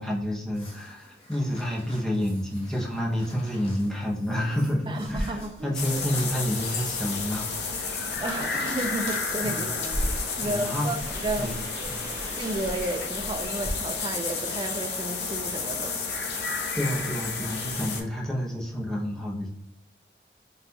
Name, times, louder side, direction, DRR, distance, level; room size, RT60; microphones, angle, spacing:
voice 1, 0.0-7.5 9.4-9.7 10.4-10.9 11.4-11.6 11.9-12.0 16.7-19.5, equal, 5° left, 0.7 m, -29 dB
sound 1, 0.5-9.4, left 1 dB, 35° left, 1.4 m, -47 dB
voice 2, 4.9-5.8 8.2-9.7 10.4-11.6 12.4-16.4, right 1 dB, 25° right, 0.4 m, -32 dB
sound 2, 5.0-13.7, right 1 dB, 85° right, 0.9 m, -38 dB
sound 3, 5.7-18.0, left 4 dB, 70° left, 0.8 m, -31 dB
5.4 x 2.4 x 2.8 m
head